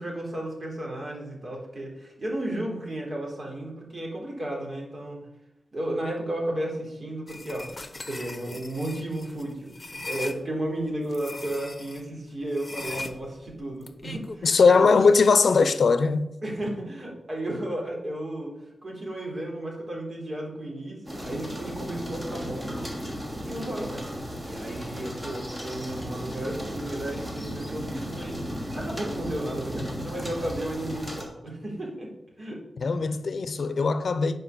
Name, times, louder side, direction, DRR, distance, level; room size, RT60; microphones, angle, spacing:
voice 1, 0.0-5.2 5.7-7.7 8.1-15.0 16.4-22.7 23.5-24.1 24.4-28.4 28.7-32.1 32.4-32.6 33.0-33.2, right 1 dB, 45° right, 3.6 m, -33 dB
sound 1, 7.3-10.4 11.1-12.0 12.5-14.5, left 2 dB, 35° left, 0.9 m, -39 dB
voice 2, 14.4-16.3 32.8-34.4, left 4 dB, 70° left, 0.6 m, -20 dB
sound 2, 21.1-31.2, equal, 25° right, 3.0 m, -35 dB
9.8 x 5.3 x 6.6 m
wide cardioid pair, 80°, 0 cm